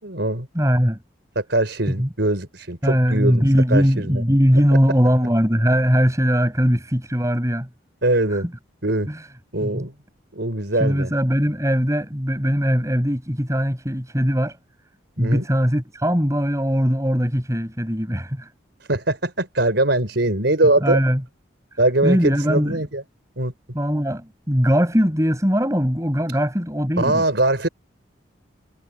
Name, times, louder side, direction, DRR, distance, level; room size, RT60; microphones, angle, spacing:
voice 1, 0.0-0.5 1.4-3.4 3.7-4.2 8.0-8.5 8.8-9.1 9.5-9.9 10.3-11.1 15.2-15.4 18.9-21.0 21.8-23.0 23.4-23.5 27.0-27.7, right 2 dB, 65° right, 4.0 m, -21 dB
voice 2, 0.5-1.0 2.0-2.1 2.8-7.7 8.3-8.4 9.1-9.3 9.6-9.9 10.8-14.6 15.2-18.5 20.8-21.2 22.0-22.8 23.7-27.2, equal, 15° right, 5.3 m, -20 dB
head